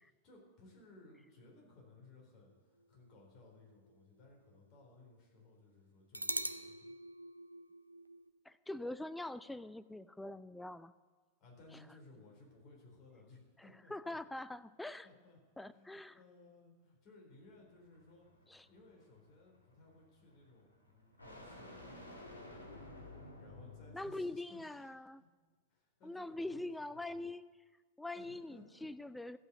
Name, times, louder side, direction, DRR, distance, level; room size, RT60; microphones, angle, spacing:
voice 1, 0.0-6.9 11.4-14.2 15.0-15.4 15.7-18.3 18.7-22.7 23.0-24.9 25.2-25.3 25.7-27.2 28.1-28.9, left 2 dB, 35° left, -1 dB, 4.0 m, -60 dB
sound 1, 2.8-4.5 4.8-4.9 6.1-8.3, right 1 dB, 85° right, 0.4 m, -43 dB
voice 2, 8.5-10.9 13.6-15.1 15.6-16.2 18.5-18.7 23.9-25.2 26.0-27.4 28.0-29.4, left 2 dB, 5° left, 14 dB, 0.4 m, -43 dB
sound 2, 17.3-24.4, left 1 dB, 80° left, 1.6 m, -54 dB
14.0 x 5.7 x 7.9 m, 1.4 s
figure-of-eight pair, 90°, 0 cm